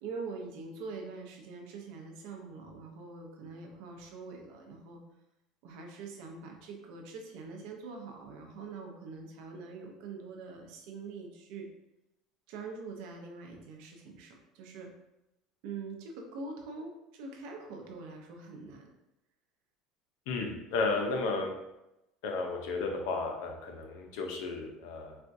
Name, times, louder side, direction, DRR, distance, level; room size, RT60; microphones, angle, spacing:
voice 1, 0.0-5.0 5.6-11.7 12.5-14.9 15.6-18.9, right 4 dB, 75° right, 2 dB, 0.7 m, -44 dB
voice 2, 20.3-21.5 22.2-25.2, left 3 dB, 80° left, 3 dB, 0.6 m, -33 dB
4.2 x 2.3 x 2.6 m, 0.89 s
supercardioid pair, 125°, 0 cm